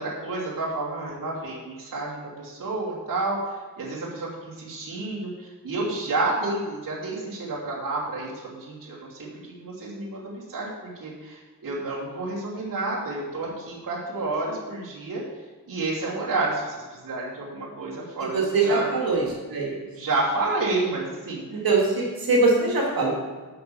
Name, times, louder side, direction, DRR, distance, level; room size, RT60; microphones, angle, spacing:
voice 1, 0.0-15.2 15.7-19.0 19.9-21.6, right 2 dB, 65° right, -7 dB, 2.8 m, -30 dB
voice 2, 18.3-19.8 21.5-23.1, right 3 dB, 80° right, -2 dB, 2.5 m, -22 dB
7.0 x 6.7 x 7.0 m, 1.3 s
wide cardioid pair, 180°, 35 cm